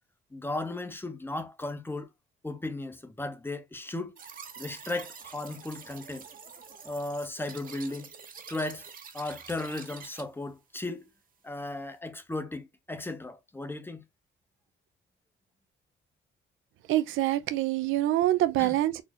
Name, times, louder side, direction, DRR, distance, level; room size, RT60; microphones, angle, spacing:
voice 1, 0.3-2.1 2.4-4.2 4.6-6.3 6.9-8.1 8.5-8.9 9.1-11.0 11.4-14.0 18.6-18.8, left 2 dB, 10° left, 0.6 m, -36 dB
sound 1, 4.2-10.2, right 6 dB, 45° right, 0.7 m, -47 dB
voice 2, 16.9-19.0, right 14 dB, 85° right, 0.5 m, -25 dB
4.0 x 2.0 x 2.9 m
cardioid pair, 90°, 20 cm